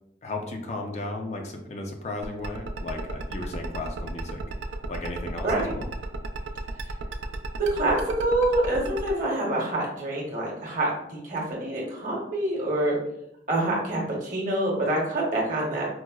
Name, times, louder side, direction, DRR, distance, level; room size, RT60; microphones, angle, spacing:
voice 1, 0.2-4.5 4.9-5.9, left 2 dB, 40° left, 2 dB, 0.4 m, -35 dB
sound 1, 2.2-9.1, right 4 dB, 85° right, 0.3 m, -35 dB
voice 2, 5.4-5.7 7.6-13.0 13.5-15.9, right 1 dB, 45° right, -3 dB, 0.9 m, -26 dB
4.5 x 2.0 x 2.2 m, 0.79 s
head